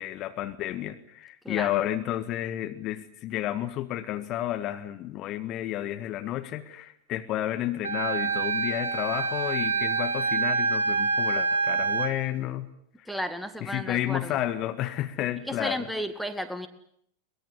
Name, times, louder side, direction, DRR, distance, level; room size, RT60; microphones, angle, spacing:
voice 1, 0.0-12.7 13.6-15.9, left 13 dB, 35° left, 1.7 m, -31 dB
Wind instrument woodwind instrument, 7.8-12.1, right 4 dB, 70° right, 2.3 m, -26 dB
voice 2, 13.1-14.4 15.5-16.7, equal, ahead, 2.1 m, -33 dB
23.0 x 20.5 x 10.0 m
figure-of-eight pair, 90°, 0 cm